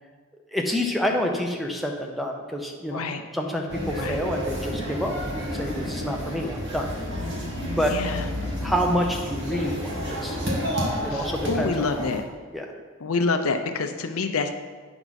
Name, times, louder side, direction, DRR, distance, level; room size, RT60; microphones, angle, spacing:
voice 1, 0.5-5.1 5.4-6.9 7.8-8.0 8.6-10.4 11.0-12.1 12.5-12.7, equal, ahead, 2 dB, 0.7 m, -28 dB
voice 2, 2.9-3.2 4.0-4.2 7.9-8.2 11.1-12.2 13.0-14.5, left 4 dB, 70° left, 7 dB, 0.6 m, -27 dB
sound 1, 3.7-12.2, equal, 50° right, 1.8 m, -30 dB
8.9 x 6.0 x 4.1 m, 1.5 s
head